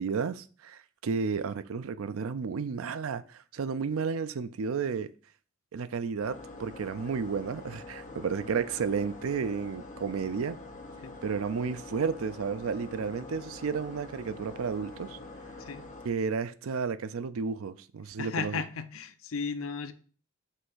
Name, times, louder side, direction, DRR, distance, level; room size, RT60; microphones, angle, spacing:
voice 1, 0.0-5.1 5.7-10.6 11.2-15.2 16.0-18.6, right 5 dB, 85° right, 0.5 m, -32 dB
sound 1, 6.2-16.1, left 2 dB, 40° left, 1.2 m, -45 dB
voice 2, 18.2-19.9, left 5 dB, 75° left, 0.6 m, -35 dB
5.6 x 3.4 x 5.5 m
head